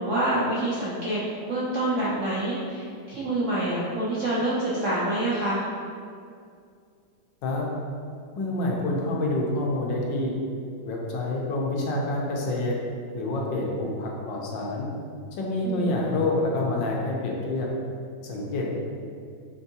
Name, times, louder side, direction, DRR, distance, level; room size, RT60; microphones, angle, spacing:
voice 1, 0.0-5.7 15.6-15.9, right 1 dB, 70° right, -8 dB, 0.7 m, -27 dB
voice 2, 8.4-10.3 10.8-12.8 13.1-14.9 15.4-17.7 18.2-18.7, left 2 dB, 75° left, -2 dB, 1.4 m, -27 dB
5.4 x 3.4 x 2.7 m, 2.3 s
omnidirectional pair, 2.1 m